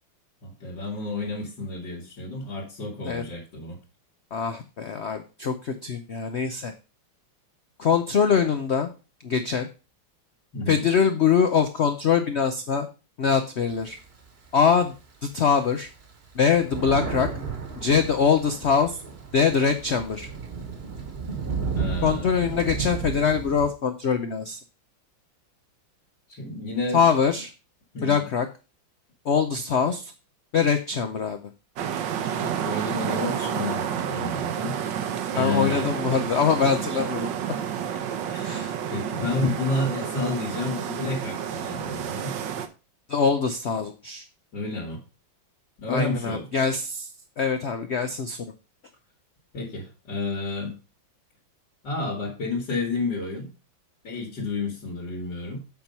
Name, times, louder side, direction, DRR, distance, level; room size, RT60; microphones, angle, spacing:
voice 1, 0.4-3.8 10.5-10.8 21.7-22.3 26.3-27.0 27.9-28.2 32.4-35.9 38.3-42.4 44.5-45.0 45.8-46.5 49.5-50.8 51.8-53.5 54.0-55.6, left 2 dB, 65° left, -3 dB, 2.4 m, -31 dB
voice 2, 4.3-6.7 7.8-8.9 9.2-9.7 10.7-12.9 13.2-14.0 14.5-14.9 15.2-15.9 16.3-17.3 17.8-19.0 19.3-20.3 22.0-24.6 26.9-27.5 28.0-28.5 29.2-30.1 30.5-31.4 35.3-37.3 38.4-38.7 39.2-39.5 43.1-44.2 45.9-47.1 47.4-48.4, left 6 dB, 80° left, 7 dB, 0.6 m, -23 dB
Thunder, 13.7-15.0 15.5-15.6 15.9-23.7, right 5 dB, 35° right, 1.3 m, -33 dB
sound 1, 31.8-42.7, right 9 dB, 75° right, 1.4 m, -30 dB
7.5 x 4.4 x 5.3 m, 0.31 s
omnidirectional pair, 2.1 m